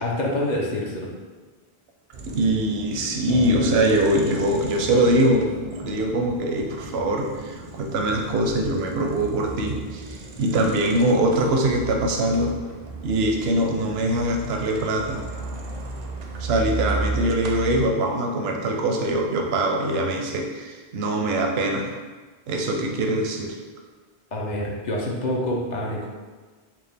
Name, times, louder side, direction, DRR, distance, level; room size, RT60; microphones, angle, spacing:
voice 1, 0.0-1.1 24.3-26.1, left 1 dB, 50° left, -2 dB, 0.7 m, -26 dB
sound 1, 2.1-17.9, right 3 dB, 55° right, 0.5 m, -35 dB
voice 2, 2.3-5.5 5.8-12.5 13.0-15.2 16.4-21.9 22.5-23.6, right 1 dB, 85° right, 1 dB, 0.8 m, -23 dB
sound 2, 3.3-8.2, left 2 dB, 85° left, 0.8 m, -35 dB
4.3 x 2.5 x 3.3 m, 1.3 s
omnidirectional pair, 1.0 m